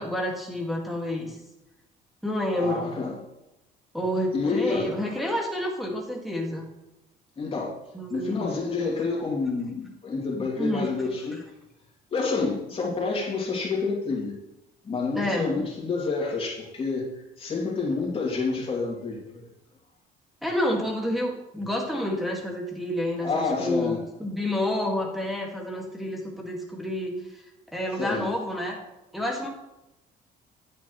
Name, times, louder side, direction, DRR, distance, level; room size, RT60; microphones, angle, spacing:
voice 1, 0.0-1.4 2.2-2.9 3.9-6.7 7.9-8.6 10.6-10.9 15.1-15.7 20.4-23.9 24.2-27.2 27.7-28.8 29.1-29.5, left 1 dB, ahead, -2 dB, 1.9 m, -29 dB
voice 2, 2.6-3.2 4.3-4.9 7.4-7.8 8.1-11.5 12.1-14.4 14.8-19.4 23.2-24.0 28.0-28.3, left 4 dB, 35° left, -2 dB, 2.6 m, -28 dB
9.3 x 8.1 x 3.1 m, 0.94 s
cardioid pair, 110°, 17 cm